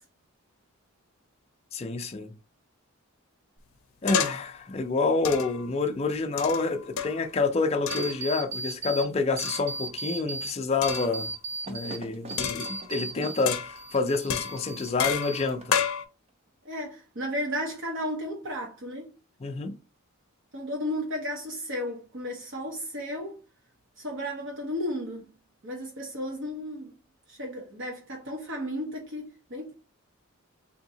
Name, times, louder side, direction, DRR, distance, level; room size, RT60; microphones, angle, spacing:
voice 1, 1.7-2.3 4.0-11.3 11.7-15.8 19.4-19.7, left 3 dB, 30° left, 0.4 m, -28 dB
sound 1, 4.1-4.6 5.2-5.7 6.4-7.3 7.9-8.2 9.4-9.9 10.8-11.2 12.4-13.0 13.5-13.9 14.3-16.0, left 7 dB, 75° left, 0.5 m, -31 dB
sound 2, 7.9-9.1 9.4-10.5 10.8-13.5 13.8-14.9 15.2-15.8, right 3 dB, 30° right, 0.5 m, -36 dB
voice 2, 16.6-19.1 20.5-23.4 24.0-25.3 25.6-26.9 27.3-29.7, equal, 60° right, 0.9 m, -34 dB
3.6 x 2.8 x 2.7 m
head